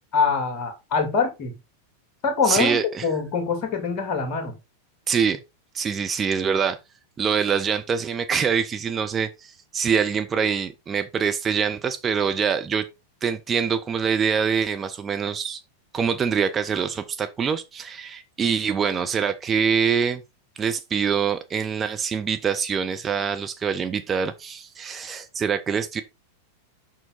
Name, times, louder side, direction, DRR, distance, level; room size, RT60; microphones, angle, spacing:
voice 1, 0.1-1.5 2.2-4.5, left 5 dB, 40° left, 2.5 m, -24 dB
voice 2, 2.5-3.0 5.1-5.4 5.7-6.8 7.2-12.8 13.2-15.6 15.9-20.2 20.6-26.0, right 6 dB, 20° right, 1.0 m, -24 dB
7.0 x 6.2 x 4.0 m
figure-of-eight pair, 90°, 0 cm